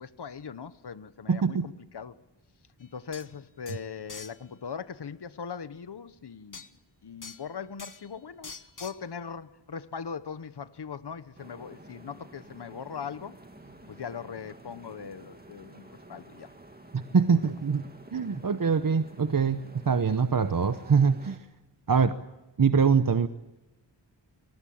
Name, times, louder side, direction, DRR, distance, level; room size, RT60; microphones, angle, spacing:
voice 1, 0.0-2.2 2.8-6.7 7.0-8.5 8.8-13.3 13.9-16.5 17.1-17.5 18.3-18.4, left 6 dB, 60° left, 1.0 m, -40 dB
voice 2, 1.3-1.6 16.9-17.8 18.1-19.6 19.9-21.4 21.9-22.1 22.6-23.3, right 6 dB, 50° right, 0.9 m, -23 dB
sound 1, 2.8-2.9 3.1-3.3 3.7-4.4 6.5-6.7 7.2-7.5 7.8-8.1 8.4-9.0, left 4 dB, 45° left, 1.4 m, -44 dB
sound 2, 11.4-21.4, right 1 dB, 20° right, 2.3 m, -50 dB
24.0 x 19.5 x 8.7 m
wide cardioid pair, 80°, 45 cm